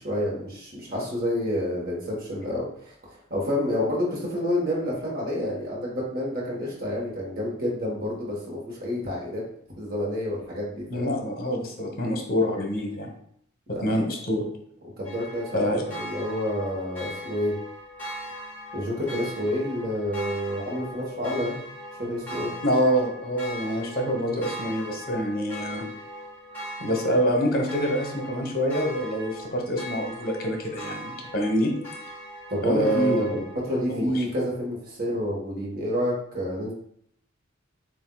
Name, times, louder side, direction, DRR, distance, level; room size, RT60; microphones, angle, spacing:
voice 1, 0.0-9.4 9.8-11.1 13.7-14.1 15.0-17.5 18.7-21.6 21.9-22.5 32.5-36.7, left 1 dB, 45° right, -4 dB, 1.2 m, -29 dB
voice 2, 10.9-13.1 13.8-14.5 15.5-15.8 22.6-25.8 26.8-31.7 32.6-33.4 33.9-34.2, equal, 45° left, 1 dB, 1.0 m, -26 dB
sound 1, 15.0-33.8, equal, 10° left, 1.7 m, -39 dB
7.5 x 2.5 x 2.3 m, 0.66 s
head